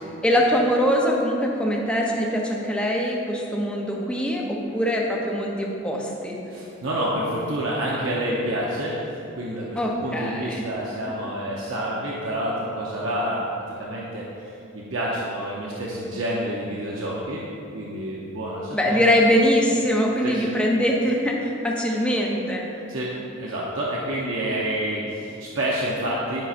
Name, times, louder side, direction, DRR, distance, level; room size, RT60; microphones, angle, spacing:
voice 1, 0.2-6.4 9.8-10.6 18.7-22.6, equal, 5° left, -2 dB, 0.6 m, -22 dB
voice 2, 6.5-17.5 17.7-19.0 20.2-20.5 22.9-23.1 23.4-26.5, right 1 dB, 70° right, -5 dB, 0.7 m, -28 dB
10.5 x 5.5 x 2.5 m, 2.8 s
head